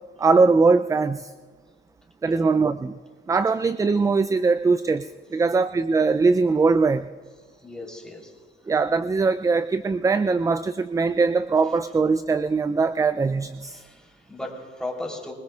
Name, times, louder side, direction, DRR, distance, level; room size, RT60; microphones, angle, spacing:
voice 1, 0.2-1.3 2.2-2.9 3.3-5.1 5.3-7.1 8.7-13.8, right 4 dB, 15° right, 13 dB, 0.3 m, -21 dB
voice 2, 7.6-8.3 13.7-15.3, left 1 dB, 5° left, -1 dB, 3.5 m, -36 dB
25.0 x 20.0 x 2.4 m, 1.5 s
cardioid pair, 90°, 20 cm